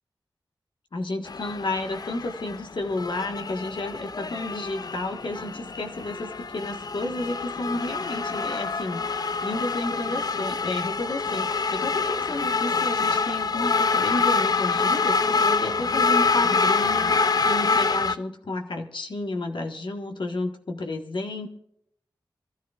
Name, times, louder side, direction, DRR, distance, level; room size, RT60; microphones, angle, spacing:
voice 1, 0.9-21.5, left 2 dB, 75° left, 3 dB, 1.6 m, -31 dB
sound 1, 1.3-18.2, left 4 dB, 50° left, 0.5 m, -26 dB
24.0 x 13.5 x 2.5 m, 0.73 s
wide cardioid pair, 75°, 8 cm